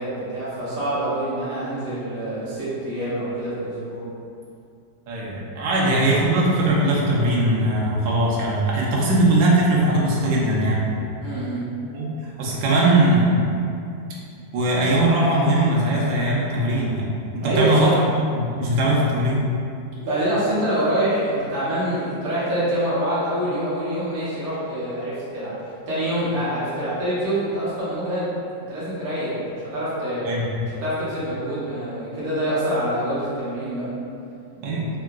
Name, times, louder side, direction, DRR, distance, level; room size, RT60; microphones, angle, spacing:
voice 1, 0.0-4.0 11.2-11.7 17.4-18.0 20.0-25.5 25.9-28.3 28.7-30.3 30.6-33.9, right 1 dB, 55° right, -10 dB, 1.3 m, -25 dB
voice 2, 5.1-10.8 11.9-12.1 12.4-13.4 14.5-19.4 30.2-30.6 34.6-34.8, right 1 dB, 85° right, -5 dB, 1.3 m, -20 dB
3.6 x 2.3 x 2.2 m, 2.5 s
omnidirectional pair, 2.0 m